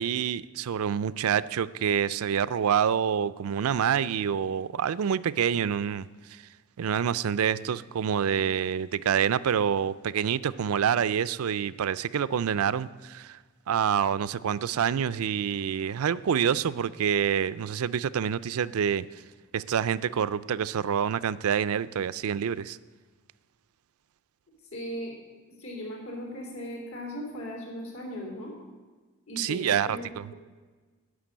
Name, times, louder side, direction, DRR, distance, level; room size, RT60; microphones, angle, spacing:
voice 1, 0.0-6.4 6.8-13.4 13.7-19.2 19.5-22.8 29.4-30.3, right 8 dB, 80° right, 17 dB, 0.4 m, -27 dB
voice 2, 24.7-25.2 25.6-28.6 29.3-30.3, equal, 75° left, -1 dB, 3.4 m, -38 dB
11.5 x 6.7 x 9.0 m, 1.3 s
head